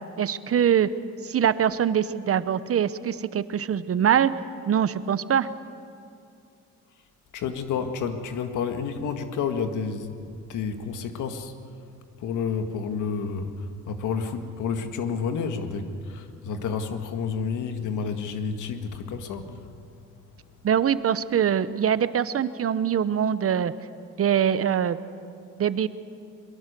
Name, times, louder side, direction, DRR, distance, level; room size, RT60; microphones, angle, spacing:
voice 1, 0.2-0.9 1.2-4.3 4.7-5.5 20.6-23.7 24.2-25.0 25.6-25.9, right 9 dB, 50° right, 14 dB, 0.9 m, -23 dB
voice 2, 7.3-11.5 12.2-13.5 13.9-19.4, left 6 dB, 80° left, 6 dB, 1.9 m, -30 dB
23.0 x 22.5 x 6.9 m, 2.4 s
cardioid pair, 90°, 30 cm